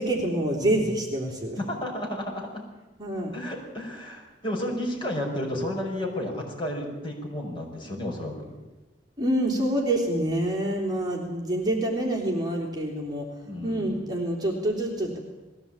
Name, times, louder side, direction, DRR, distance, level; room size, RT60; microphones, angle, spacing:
voice 1, 0.0-1.6 3.0-3.3 9.2-13.3 13.6-15.2, right 1 dB, 20° right, -2 dB, 3.4 m, -26 dB
voice 2, 1.6-2.6 3.3-8.5 13.5-14.0, left 1 dB, 25° left, -1 dB, 5.7 m, -32 dB
20.0 x 16.0 x 8.9 m, 1.1 s
head